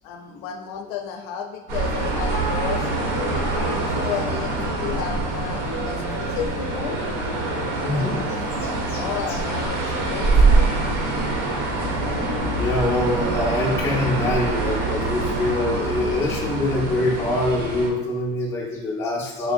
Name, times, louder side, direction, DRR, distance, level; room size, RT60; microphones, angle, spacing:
voice 1, 0.0-3.5 3.9-7.0 9.0-10.7, left 7 dB, 60° left, 5 dB, 0.5 m, -32 dB
sound 1, 1.7-17.9, right 2 dB, 70° right, 1.2 m, -24 dB
voice 2, 7.8-8.2 8.6-9.4 12.5-19.5, left 1 dB, 10° left, -3 dB, 0.4 m, -24 dB
4.3 x 3.6 x 2.6 m, 1.2 s
cardioid pair, 175°, 33 cm